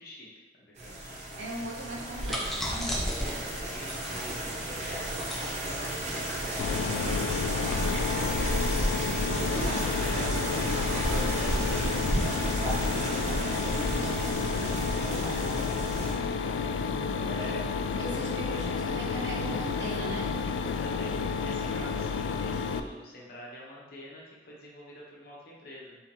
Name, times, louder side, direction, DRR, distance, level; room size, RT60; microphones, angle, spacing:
voice 1, 0.0-1.2 3.2-5.0 5.5-8.2 9.2-10.4 10.9-12.2 12.7-15.3 17.1-17.6 20.8-26.0, left 1 dB, 55° left, -4 dB, 1.1 m, -46 dB
sound 1, 0.8-16.1, right 1 dB, 40° right, 0.8 m, -33 dB
voice 2, 1.4-3.1 9.5-9.8 17.2-17.6 18.0-20.3, right 1 dB, 75° right, -3 dB, 0.9 m, -38 dB
sound 2, 1.9-13.3, equal, ahead, 0.6 m, -36 dB
Mechanisms, 6.6-22.8, left 5 dB, 85° left, 0.3 m, -31 dB
3.9 x 2.9 x 4.2 m, 1.2 s
head